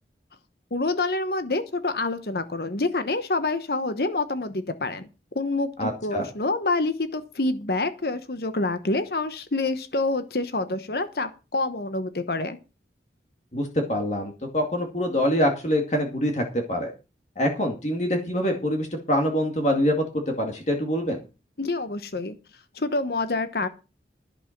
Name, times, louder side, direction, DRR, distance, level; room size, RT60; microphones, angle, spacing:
voice 1, 0.7-5.1 5.3-12.6 21.6-22.4 22.7-23.7, left 2 dB, 60° left, 11 dB, 1.0 m, -27 dB
voice 2, 5.8-6.3 13.5-16.9 17.4-20.0 20.4-21.2, equal, 40° left, 3 dB, 2.3 m, -25 dB
11.5 x 8.3 x 6.0 m, 0.31 s
head